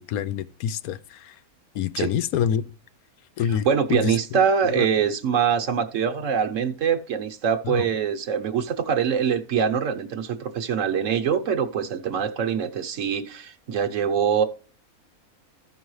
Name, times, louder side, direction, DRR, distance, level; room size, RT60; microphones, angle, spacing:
voice 1, 0.0-1.3 1.7-2.6 3.4-4.1 4.7-4.9 7.6-7.9, left 9 dB, 85° left, 1.1 m, -26 dB
voice 2, 3.5-14.4, right 7 dB, 65° right, 1.2 m, -24 dB
14.0 x 5.4 x 3.1 m
omnidirectional pair, 1.5 m